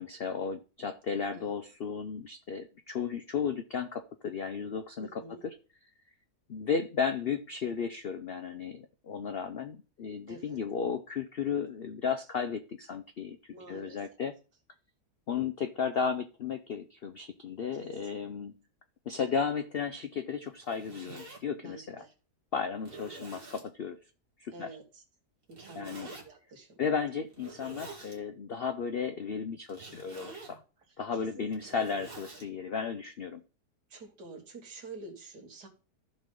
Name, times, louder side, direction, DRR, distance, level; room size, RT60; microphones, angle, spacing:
voice 1, 0.0-5.2 6.5-13.4 13.7-14.3 15.3-18.5 19.1-22.0 22.5-24.0 24.4-24.8 25.7-26.1 26.8-30.6 31.0-33.4, left 6 dB, 90° left, 9 dB, 0.5 m, -34 dB
voice 2, 5.0-5.4 10.3-10.6 13.5-14.0 17.8-17.9 18.2-18.3 21.6-22.1 24.5-25.0 25.5-26.8 31.1-31.5 33.9-35.7, right 3 dB, 70° right, 3 dB, 2.3 m, -48 dB
Zipper (clothing), 20.5-21.4 22.1-22.2 22.8-23.7 25.5-26.2 27.3-28.2 29.6-30.6 31.4-32.5, right 3 dB, 35° right, 2.1 m, -47 dB
14.0 x 5.4 x 3.8 m, 0.35 s
omnidirectional pair, 1.9 m